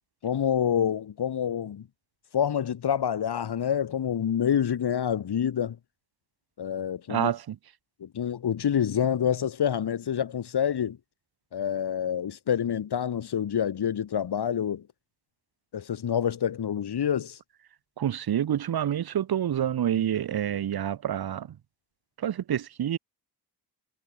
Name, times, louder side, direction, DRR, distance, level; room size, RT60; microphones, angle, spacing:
voice 1, 0.2-1.9 2.3-5.8 6.6-7.3 8.0-11.0 11.5-14.8 15.7-17.4, left 8 dB, 70° left, 2.9 m, -27 dB
voice 2, 7.1-7.6 18.0-21.6 22.2-23.0, right 10 dB, 60° right, 1.0 m, -28 dB
wide cardioid pair, 160°, 41 cm